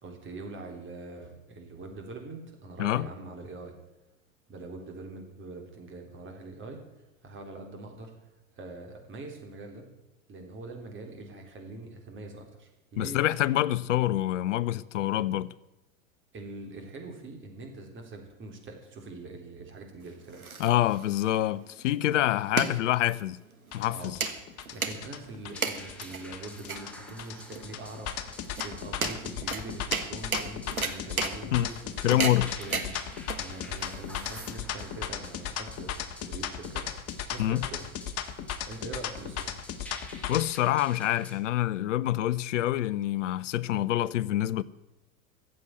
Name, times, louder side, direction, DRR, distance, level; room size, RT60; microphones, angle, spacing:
voice 1, 0.0-3.7 4.5-8.1 8.5-9.9 10.3-13.2 16.3-20.6 23.9-24.2 24.5-32.3 32.6-36.9 37.3-37.9 38.7-39.6, right 2 dB, 30° right, 3.7 m, -43 dB
voice 2, 13.0-15.5 20.6-23.4 23.7-24.2 31.5-31.7 32.0-32.5 37.4-37.6 40.3-44.6, left 14 dB, 60° left, 0.7 m, -26 dB
sound 1, 20.0-34.9, right 4 dB, 90° right, 1.5 m, -35 dB
sound 2, 23.7-40.4, left 10 dB, 35° left, 1.4 m, -36 dB
sound 3, 25.5-41.3, left 1 dB, 5° left, 2.5 m, -50 dB
14.5 x 7.8 x 9.4 m
figure-of-eight pair, 90°, 42 cm